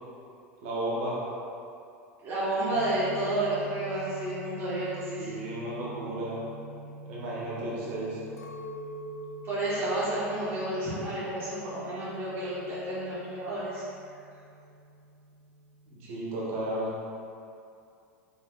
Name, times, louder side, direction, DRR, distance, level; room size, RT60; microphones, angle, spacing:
voice 1, 0.6-1.2 5.2-6.4 7.0-8.2 15.9-16.9, right 1 dB, 65° right, -6 dB, 1.2 m, -33 dB
voice 2, 2.2-5.4 9.4-13.8, right 1 dB, 30° right, -10 dB, 1.1 m, -31 dB
sound 1, 2.6-16.1, right 1 dB, 70° left, 1.4 m, -47 dB
Chink clink, 8.4-12.7 13.0-13.8, right 1 dB, 85° left, 0.4 m, -45 dB
4.1 x 3.7 x 2.2 m, 2.5 s
hypercardioid pair, 90°, 8 cm